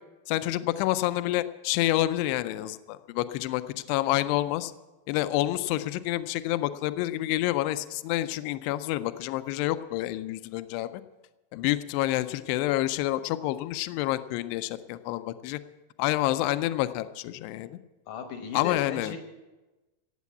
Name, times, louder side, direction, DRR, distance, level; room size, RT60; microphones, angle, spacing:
voice 1, 0.3-3.6 3.9-4.7 5.1-10.9 11.5-15.6 16.0-17.7 18.5-19.1, left 15 dB, 80° left, 12 dB, 2.6 m, -28 dB
voice 2, 18.1-19.2, left 5 dB, 65° left, 6 dB, 2.1 m, -36 dB
16.5 x 8.3 x 8.4 m, 1.1 s
omnidirectional pair, 5.0 m